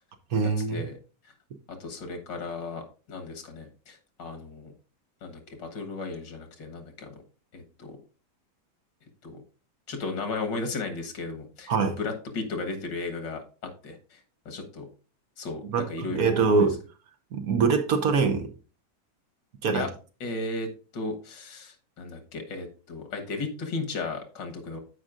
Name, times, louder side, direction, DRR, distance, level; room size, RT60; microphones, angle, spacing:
voice 1, 0.3-0.9 11.7-12.0 15.7-16.8 17.3-18.5 19.6-19.9, right 4 dB, 60° right, 7 dB, 1.3 m, -24 dB
voice 2, 1.8-4.7 5.2-7.2 7.5-8.0 9.2-9.4 9.9-14.2 14.5-14.9 15.4-16.7 19.7-19.9 20.2-24.8, left 3 dB, 90° left, 5 dB, 2.1 m, -35 dB
13.5 x 5.0 x 2.5 m, 0.36 s
omnidirectional pair, 1.9 m